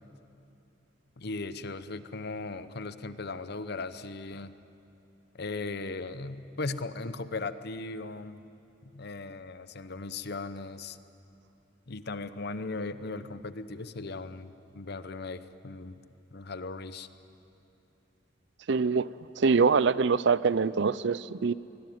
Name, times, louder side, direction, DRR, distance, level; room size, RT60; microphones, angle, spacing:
voice 1, 1.2-4.6 5.3-8.4 8.8-11.0 11.9-16.0 16.3-17.1, left 3 dB, 55° left, 12 dB, 0.9 m, -38 dB
voice 2, 18.7-19.1 19.4-21.5, right 5 dB, 65° right, 18 dB, 0.5 m, -24 dB
24.5 x 21.0 x 9.4 m, 2.7 s
head